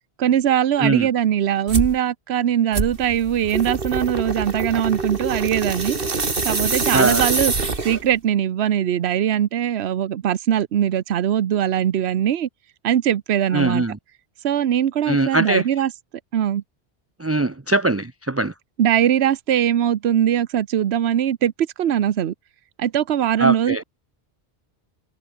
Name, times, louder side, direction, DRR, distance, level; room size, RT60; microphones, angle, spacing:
voice 1, 0.2-6.0 6.4-7.5 7.8-12.5 12.8-13.8 14.4-15.9 16.3-16.6 18.8-21.5 21.8-22.3 22.8-23.8, right 10 dB, 75° right, 1.0 m, -21 dB
sound 1, 1.7-2.0 2.7-8.2, right 3 dB, 60° right, 2.4 m, -25 dB
voice 2, 6.9-7.3 13.5-14.0 15.1-15.7 17.2-18.5 23.4-23.8, right 2 dB, 15° right, 0.7 m, -21 dB
omnidirectional pair, 1.1 m